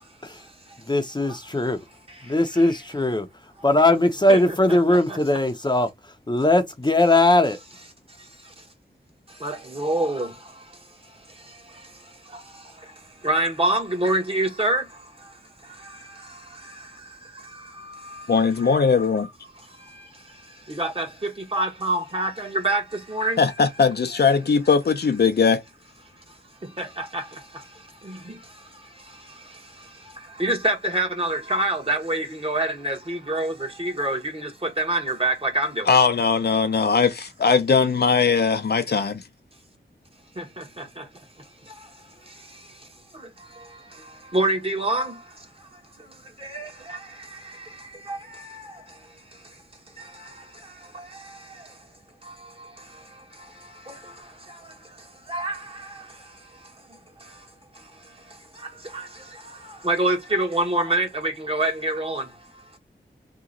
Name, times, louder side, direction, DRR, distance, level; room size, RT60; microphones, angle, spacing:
voice 1, 0.9-1.8 2.2-3.3 3.6-5.9 6.3-7.6, left 2 dB, 25° left, 0.7 m, -19 dB
voice 2, 9.4-10.3 13.2-14.8 20.8-22.8 23.1-23.4 26.8-27.2 30.4-33.5 33.8-35.8 44.3-45.1 46.5-47.0 48.1-48.2 55.3-55.6 59.8-62.2, right 1 dB, 30° right, 1.2 m, -25 dB
voice 3, 18.3-19.3 23.4-25.6 35.9-39.2, left 5 dB, 60° left, 0.6 m, -20 dB
3.0 x 2.4 x 3.8 m
wide cardioid pair, 65°, 18 cm